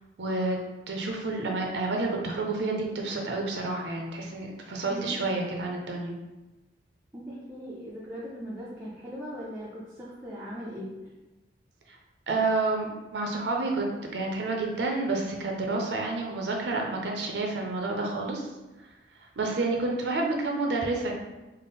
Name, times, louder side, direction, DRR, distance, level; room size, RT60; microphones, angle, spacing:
voice 1, 0.2-0.6 0.9-6.2 11.9-12.0 12.3-13.9 14.1-18.5 19.4-21.1, right 3 dB, 75° right, 0 dB, 0.5 m, -29 dB
voice 2, 7.1-10.9 12.5-12.6, equal, 15° right, -7 dB, 0.5 m, -39 dB
4.0 x 2.0 x 3.5 m, 1.1 s
head